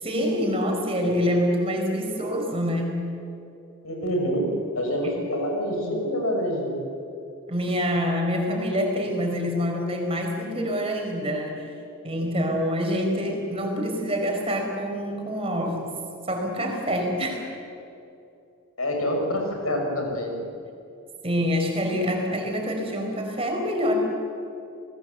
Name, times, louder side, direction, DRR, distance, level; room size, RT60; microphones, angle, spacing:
voice 1, 0.0-3.1 7.5-11.6 12.0-15.9 16.3-17.5 21.2-23.9, equal, 25° right, 2 dB, 4.9 m, -26 dB
voice 2, 3.8-4.5 4.7-6.8 18.8-20.4, equal, 80° left, 1 dB, 6.4 m, -26 dB
28.5 x 19.5 x 8.0 m, 2.7 s
head